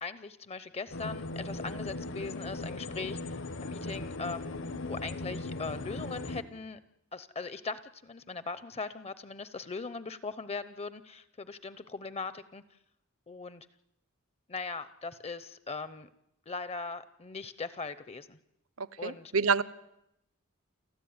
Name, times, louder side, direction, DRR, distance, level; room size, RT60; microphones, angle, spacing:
voice 1, 0.0-6.8 7.1-12.8 13.3-13.7 14.5-16.1 16.5-18.4 19.0-19.3, left 4 dB, 30° left, 14 dB, 0.7 m, -40 dB
sound 1, 0.9-6.4, left 2 dB, 65° left, 1.3 m, -38 dB
voice 2, 18.8-19.6, right 5 dB, 75° right, 19 dB, 0.8 m, -28 dB
28.5 x 12.5 x 9.6 m, 0.86 s
head